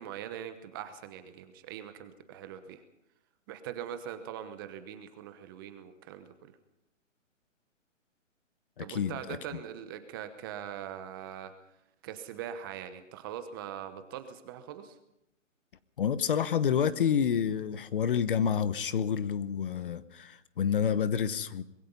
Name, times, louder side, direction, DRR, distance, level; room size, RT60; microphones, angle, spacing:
voice 1, 0.0-2.8 3.5-6.5 8.8-11.5 12.0-14.9, right 9 dB, 15° right, 9 dB, 1.0 m, -42 dB
voice 2, 8.8-9.4 16.0-21.6, left 7 dB, 45° left, 15 dB, 1.0 m, -29 dB
24.5 x 21.5 x 5.4 m, 0.83 s
hypercardioid pair, 160°, 39 cm